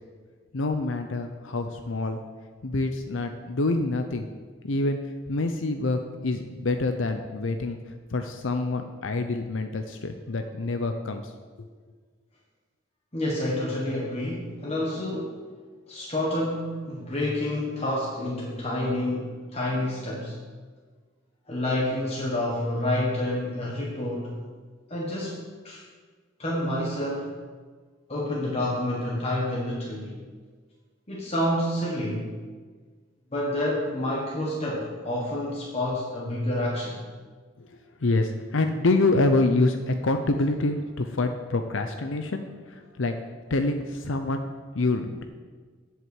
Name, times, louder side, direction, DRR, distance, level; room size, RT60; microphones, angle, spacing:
voice 1, 0.5-2.2 2.6-4.3 4.6-5.0 5.3-7.8 8.1-11.3 37.6-43.1 43.5-45.2, left 2 dB, 80° left, 6 dB, 0.7 m, -26 dB
voice 2, 13.1-15.4 15.9-20.3 21.5-24.3 24.9-25.8 26.4-27.3 28.1-30.2 31.1-32.3 33.3-37.0, left 1 dB, 30° left, -4 dB, 1.4 m, -28 dB
8.1 x 7.7 x 8.2 m, 1.5 s
head